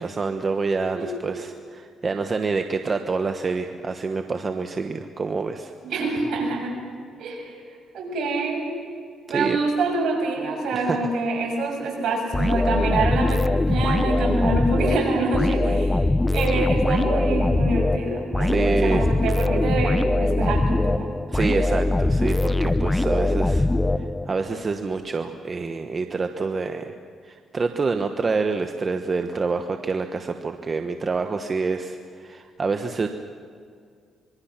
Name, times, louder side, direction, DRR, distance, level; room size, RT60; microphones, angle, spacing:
voice 1, 0.0-5.7 9.3-9.6 10.7-11.0 18.4-19.1 21.3-23.7 24.0-26.9 27.2-33.1, right 4 dB, 35° right, 6 dB, 1.2 m, -27 dB
voice 2, 5.8-6.8 7.2-7.6 7.9-8.7 9.3-13.4 13.7-16.0 16.3-21.1, right 3 dB, 70° right, 1 dB, 6.8 m, -26 dB
sound 1, 12.3-24.5, left 2 dB, 15° left, 0.7 m, -22 dB
26.0 x 22.5 x 6.0 m, 2.1 s
cardioid pair, 90°, 0 cm